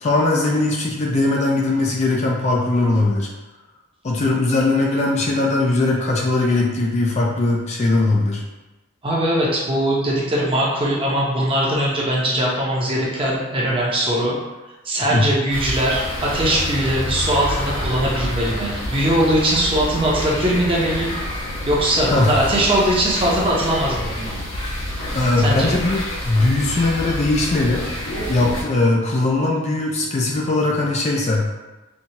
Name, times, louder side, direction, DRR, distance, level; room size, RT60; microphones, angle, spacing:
voice 1, 0.0-3.3 4.0-8.4 15.1-15.3 22.0-22.5 25.1-27.8 28.3-31.5, left 2 dB, 30° left, -1 dB, 0.4 m, -20 dB
voice 2, 9.0-14.3 14.8-21.2 21.6-24.4 24.9-25.0 25.4-25.7, right 1 dB, 25° right, -4 dB, 0.7 m, -20 dB
sound 1, 15.5-28.6, left 1 dB, 70° left, 1.0 m, -28 dB
4.4 x 2.3 x 2.8 m, 1.1 s
head